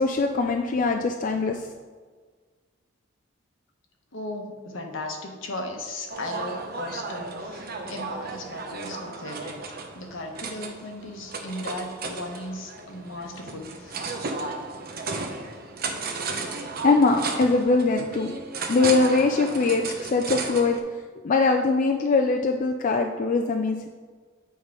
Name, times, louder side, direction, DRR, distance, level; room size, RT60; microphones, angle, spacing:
voice 1, 0.0-1.6 16.8-18.4 18.7-20.8 21.2-23.9, left 3 dB, 40° left, 3 dB, 0.3 m, -22 dB
voice 2, 4.1-9.5 9.9-14.1, left 2 dB, 70° left, 3 dB, 1.0 m, -36 dB
sound 1, 6.1-20.8, right 4 dB, 50° right, 0.7 m, -34 dB
8.1 x 3.7 x 4.8 m, 1.5 s
head